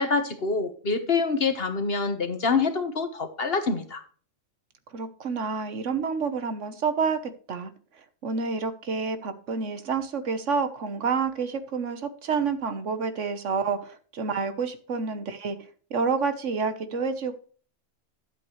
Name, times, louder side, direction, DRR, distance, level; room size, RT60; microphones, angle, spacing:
voice 1, 0.0-4.0, left 4 dB, 50° left, 9 dB, 1.4 m, -26 dB
voice 2, 4.9-7.2 7.5-7.7 8.2-15.6 15.9-17.4, right 5 dB, 65° right, 10 dB, 1.4 m, -28 dB
12.0 x 8.2 x 3.1 m, 0.42 s
omnidirectional pair, 1.4 m